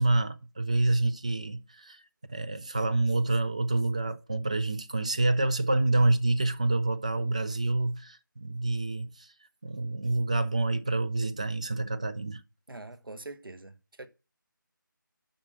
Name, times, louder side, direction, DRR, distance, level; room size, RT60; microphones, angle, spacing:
voice 1, 0.0-2.0 2.3-9.3 9.6-12.4, right 2 dB, 20° right, 0.4 m, -27 dB
voice 2, 12.7-14.1, right 2 dB, 90° right, 1.3 m, -44 dB
7.8 x 5.7 x 6.3 m
figure-of-eight pair, 170°, 11 cm